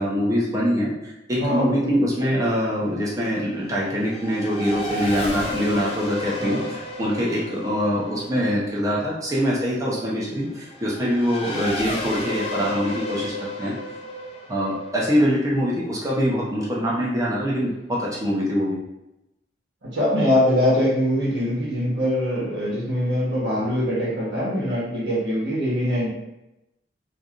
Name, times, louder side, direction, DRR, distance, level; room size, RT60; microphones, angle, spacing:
voice 1, 0.0-13.8 14.5-18.8, equal, 15° right, -5 dB, 0.6 m, -24 dB
voice 2, 1.4-1.9 6.4-6.6 19.8-26.1, equal, 60° right, -6 dB, 1.0 m, -23 dB
Race car auto racing / Accelerating revving vroom, 2.3-16.4, left 1 dB, 35° left, 0.5 m, -34 dB
3.1 x 2.6 x 2.4 m, 0.92 s
head